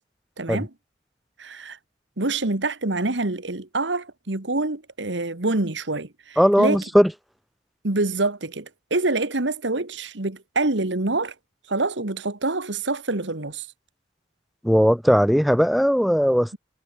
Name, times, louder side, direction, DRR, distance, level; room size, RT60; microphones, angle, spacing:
voice 1, 0.4-0.7 1.4-1.8 2.2-6.8 7.8-11.3 11.7-13.7, right 2 dB, 75° right, 1.8 m, -26 dB
voice 2, 6.4-7.1 14.6-16.6, equal, ahead, 0.4 m, -18 dB
head